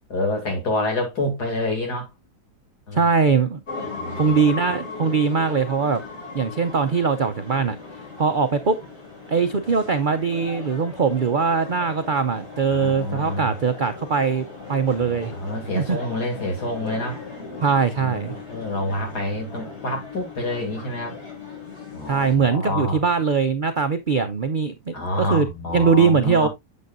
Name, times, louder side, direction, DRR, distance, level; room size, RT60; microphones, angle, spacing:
voice 1, 0.1-2.1 2.9-3.1 4.0-4.4 12.7-13.5 15.0-17.2 18.0-21.2 21.9-23.0 24.9-26.5, left 1 dB, 70° left, 3.2 m, -27 dB
voice 2, 2.9-3.6 4.2-6.0 6.3-7.8 8.2-8.8 9.3-15.3 15.8-16.0 17.6-18.3 22.1-25.5 25.7-26.5, right 5 dB, 80° right, 0.4 m, -21 dB
sound 1, 3.7-22.4, left 4 dB, 40° left, 3.4 m, -38 dB
8.3 x 7.3 x 2.5 m
omnidirectional pair, 1.8 m